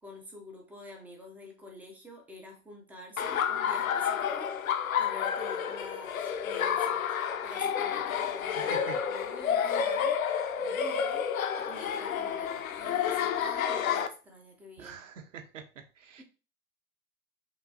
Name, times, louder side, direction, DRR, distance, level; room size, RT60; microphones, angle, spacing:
voice 1, 0.0-4.5 4.9-7.1 7.4-10.2 10.6-11.2 11.6-15.1 16.2-16.3, left 1 dB, 5° right, 1 dB, 0.3 m, -48 dB
Laughter, 3.2-14.1, left 8 dB, 75° left, 0.6 m, -30 dB
voice 2, 8.5-9.0 14.8-15.6 16.0-16.2, right 7 dB, 60° right, 5 dB, 0.9 m, -44 dB
5.5 x 2.4 x 2.7 m, 0.34 s
figure-of-eight pair, 95°, 42 cm